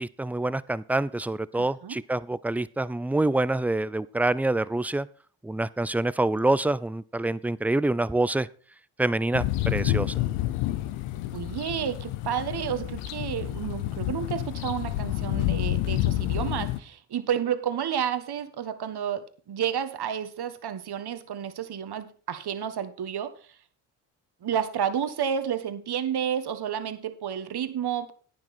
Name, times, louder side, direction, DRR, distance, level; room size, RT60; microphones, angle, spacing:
voice 1, 0.0-5.1 5.4-8.5 9.0-10.1, right 2 dB, 5° right, 18 dB, 0.4 m, -26 dB
voice 2, 1.5-2.0 11.3-23.3 24.4-28.1, right 9 dB, 50° right, 10 dB, 1.5 m, -31 dB
sound 1, 9.3-16.8, left 15 dB, 85° left, 0.9 m, -29 dB
10.5 x 9.5 x 4.3 m, 0.40 s
supercardioid pair, 60°, 48 cm